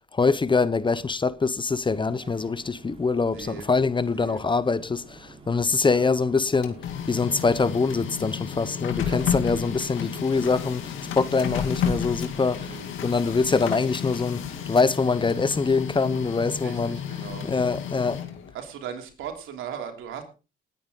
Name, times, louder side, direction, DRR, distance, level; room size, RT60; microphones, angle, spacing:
voice 1, 0.0-6.8 7.1-12.7 13.0-17.0 17.4-18.2, left 4 dB, 25° left, 0.8 m, -24 dB
sound 1, 1.8-15.7, right 3 dB, 25° right, 4.3 m, -50 dB
voice 2, 3.2-3.6 4.1-4.4 5.9-6.1 9.0-9.2 10.3-10.4 12.6-12.9 16.6-17.5 18.5-20.2, right 8 dB, 85° right, 3.3 m, -38 dB
Printer, 6.4-18.5, left 8 dB, 80° left, 2.5 m, -32 dB
19.5 x 9.4 x 3.9 m
cardioid pair, 90°, 20 cm